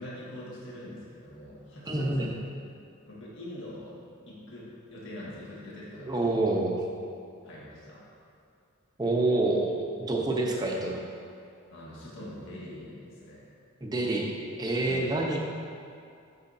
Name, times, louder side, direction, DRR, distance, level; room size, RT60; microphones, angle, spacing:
voice 1, 0.0-2.3 3.1-4.0 4.3-6.5 7.4-8.0 10.0-10.2 11.7-13.5 14.8-15.2, left 1 dB, 55° left, -7 dB, 1.7 m, -43 dB
voice 2, 1.9-2.3 6.0-6.7 9.0-11.0 13.8-14.3 14.6-15.4, right 2 dB, 15° right, -1 dB, 0.7 m, -27 dB
12.0 x 6.3 x 2.7 m, 2.5 s
head